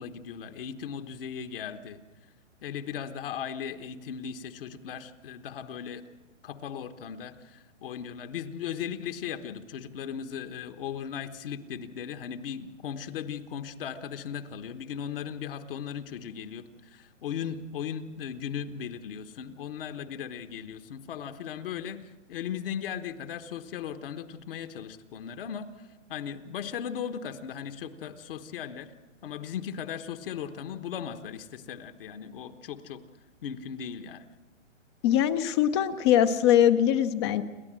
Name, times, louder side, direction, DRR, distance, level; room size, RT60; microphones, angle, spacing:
voice 1, 0.0-2.0 2.6-6.1 6.4-22.0 22.3-25.7 26.1-28.9 29.2-33.0 33.4-34.2, left 8 dB, 45° left, 7 dB, 1.3 m, -37 dB
voice 2, 35.0-37.4, left 10 dB, 20° left, 11 dB, 0.6 m, -22 dB
29.0 x 12.0 x 7.6 m, 1.2 s
hypercardioid pair, 145°, 38 cm